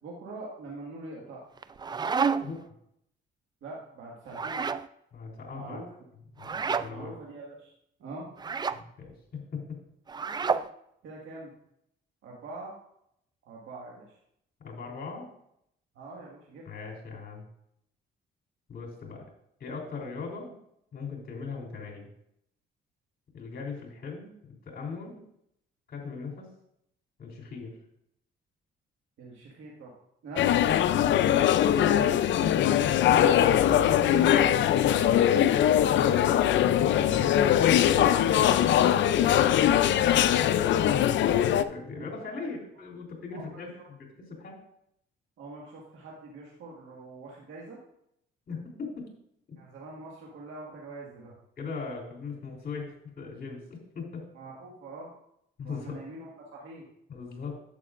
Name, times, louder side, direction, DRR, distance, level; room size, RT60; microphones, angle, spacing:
voice 1, 0.0-1.4 3.6-4.6 5.5-5.9 6.9-7.7 8.0-8.3 10.4-10.6 11.0-11.5 12.2-12.7 13.5-14.2 16.0-16.6 29.2-29.9 30.2-31.2 33.7-34.7 38.2-39.4 41.9-42.5 43.3-43.9 45.4-47.8 49.6-51.3 54.3-55.1 55.6-56.9, right 2 dB, 80° right, -3 dB, 1.8 m, -43 dB
sound 1, 1.6-2.6 4.3-4.9 6.4-6.9 8.4-8.8 10.1-10.7, right 5 dB, 20° right, 0.3 m, -29 dB
voice 2, 5.1-5.8 6.3-7.2 8.7-9.8 14.6-15.3 16.6-17.5 18.7-19.2 19.6-20.6 20.9-22.1 23.3-24.3 24.6-25.2 25.9-26.5 27.2-27.7 32.6-32.8 35.9-37.7 41.5-44.6 48.5-49.1 51.6-54.2 55.6-56.0 57.1-57.6, left 4 dB, 50° left, -1 dB, 3.3 m, -39 dB
sound 2, 30.4-41.6, left 10 dB, 70° left, 0.5 m, -22 dB
11.0 x 8.3 x 2.5 m, 0.75 s
cardioid pair, 90°, 20 cm